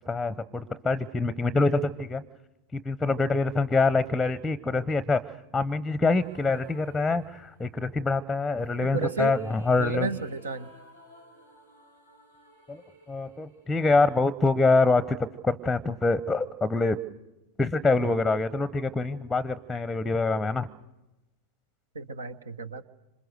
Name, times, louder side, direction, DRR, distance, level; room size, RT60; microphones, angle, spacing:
voice 1, 0.1-2.2 2.7-10.1 12.7-12.8 13.1-17.0 17.6-20.7, left 3 dB, 5° left, 18 dB, 0.8 m, -25 dB
sound 1, 6.1-7.9 8.6-14.7, right 1 dB, 85° right, 4.3 m, -55 dB
voice 2, 8.9-9.4 9.8-10.7 21.9-22.8, right 4 dB, 70° right, 13 dB, 1.2 m, -32 dB
26.5 x 26.5 x 6.6 m, 0.98 s
figure-of-eight pair, 90°, 0 cm